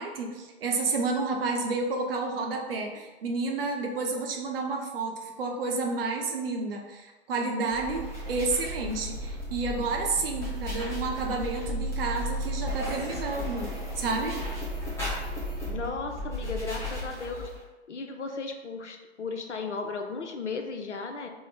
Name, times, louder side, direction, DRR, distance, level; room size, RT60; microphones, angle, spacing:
voice 1, 0.0-13.7 14.0-14.4, right 3 dB, 55° right, 1 dB, 0.7 m, -30 dB
sound 1, 7.7-17.6, equal, 10° left, 0.7 m, -34 dB
voice 2, 15.7-17.5 17.9-21.3, left 4 dB, 90° left, 5 dB, 0.5 m, -35 dB
2.8 x 2.0 x 4.0 m, 1.2 s
figure-of-eight pair, 115°, 34 cm